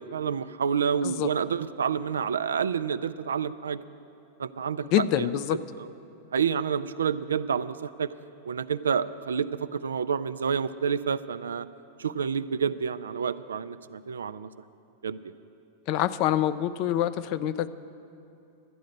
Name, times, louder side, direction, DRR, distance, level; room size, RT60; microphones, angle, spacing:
voice 1, 0.0-3.8 4.4-5.3 5.8-5.9 6.3-8.1 8.5-11.7 12.0-14.5 15.0-15.3, right 7 dB, 80° right, 13 dB, 0.3 m, -29 dB
voice 2, 4.9-5.6 15.9-17.7, left 11 dB, 50° left, 14 dB, 0.4 m, -26 dB
12.5 x 9.4 x 6.5 m, 2.8 s
hypercardioid pair, 100°, 0 cm